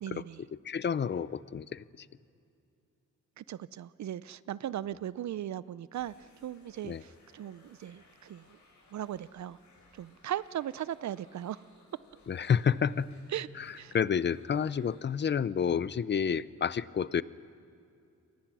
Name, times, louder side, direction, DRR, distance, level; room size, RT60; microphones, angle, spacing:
voice 1, 0.0-0.4 3.4-8.6 8.9-9.6 9.9-11.7 13.3-13.5 13.7-14.0, right 11 dB, 65° right, 18 dB, 0.5 m, -38 dB
voice 2, 0.5-1.8 6.8-7.0 12.3-13.1 13.9-17.2, left 7 dB, 35° left, 17 dB, 0.6 m, -29 dB
sound 1, 5.9-15.2, left 2 dB, 70° left, 7.1 m, -61 dB
28.5 x 23.5 x 6.2 m, 2.5 s
wide cardioid pair, 135°, 31 cm